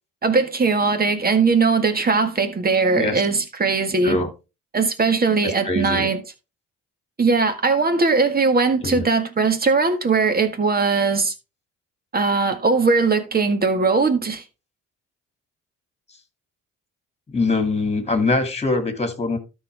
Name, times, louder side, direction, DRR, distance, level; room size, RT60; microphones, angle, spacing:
voice 1, 0.2-4.2 4.7-6.2 7.2-11.3 12.1-14.4, right 4 dB, 30° right, 1.8 m, -20 dB
voice 2, 5.6-6.1 8.8-9.1 17.3-19.4, left 3 dB, 20° left, 2.5 m, -23 dB
13.0 x 4.8 x 3.5 m
cardioid pair, 90°, 30 cm